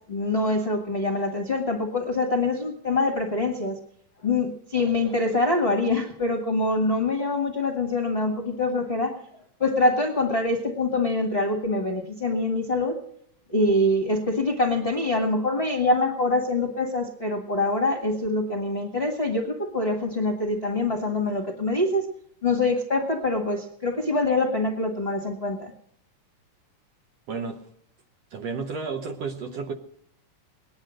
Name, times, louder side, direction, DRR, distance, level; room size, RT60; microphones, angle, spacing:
voice 1, 0.1-3.8 4.2-9.2 9.6-13.0 13.5-22.1 22.4-25.7, left 2 dB, 35° left, 1 dB, 1.1 m, -25 dB
voice 2, 27.3-27.6 28.3-29.7, right 4 dB, 65° right, 5 dB, 1.8 m, -32 dB
20.0 x 10.5 x 6.3 m, 0.69 s
omnidirectional pair, 3.7 m